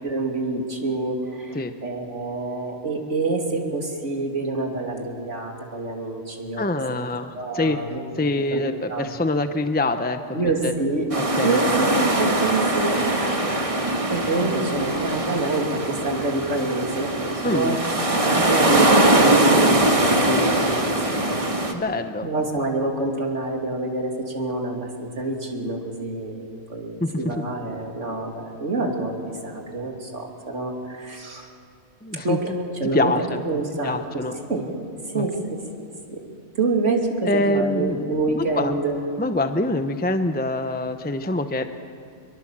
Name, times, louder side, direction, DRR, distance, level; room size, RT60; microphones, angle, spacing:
voice 1, 0.0-6.6 7.3-8.0 8.5-8.6 8.9-9.1 10.3-11.1 11.4-13.3 13.7-13.8 14.1-17.8 18.2-21.4 22.2-31.5 32.1-32.5 32.8-34.2 34.5-34.7 35.1-36.2 36.5-39.0, right 3 dB, 80° right, 1 dB, 3.2 m, -27 dB
voice 2, 6.6-7.8 8.2-10.4 10.6-10.7 11.1-11.6 13.4-13.6 17.4-17.8 21.7-22.3 27.0-27.1 32.0-32.4 32.9-33.4 33.8-34.3 35.1-35.3 37.2-38.8 39.2-41.7, left 2 dB, 10° left, 8 dB, 0.7 m, -25 dB
sound 1, 11.1-21.7, right 1 dB, 30° right, 1.7 m, -21 dB
24.0 x 23.0 x 7.5 m, 2.4 s
omnidirectional pair, 1.2 m